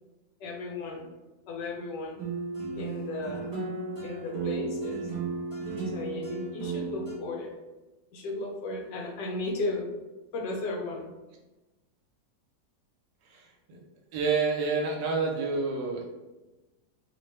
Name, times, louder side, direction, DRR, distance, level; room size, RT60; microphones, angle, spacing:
voice 1, 0.4-1.1 1.5-2.2 2.8-3.5 4.0-5.1 5.9-7.5 8.1-9.9 10.3-11.1, left 2 dB, 75° left, 1 dB, 1.2 m, -35 dB
sound 1, 2.2-7.1, right 3 dB, 15° right, 0.7 m, -34 dB
voice 2, 14.1-16.0, right 4 dB, 80° right, 1 dB, 1.2 m, -28 dB
3.2 x 2.0 x 3.2 m, 1.1 s
omnidirectional pair, 2.0 m